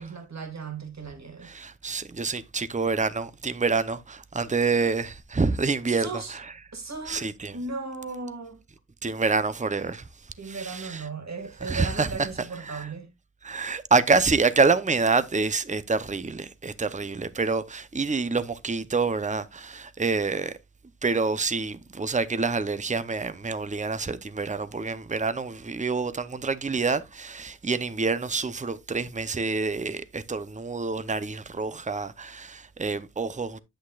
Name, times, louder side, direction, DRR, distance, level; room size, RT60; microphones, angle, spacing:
voice 1, 0.0-1.5 5.9-6.4 6.7-7.3 7.5-8.6 10.4-13.1, right 4 dB, 65° right, 1.9 m, -36 dB
voice 2, 1.4-6.5 7.1-7.6 9.0-10.1 10.4-11.0 11.6-12.1 12.6-12.9 13.4-20.5 21.0-33.6, right 4 dB, 25° right, 0.7 m, -27 dB
10.0 x 8.3 x 2.4 m
wide cardioid pair, 85°, 29 cm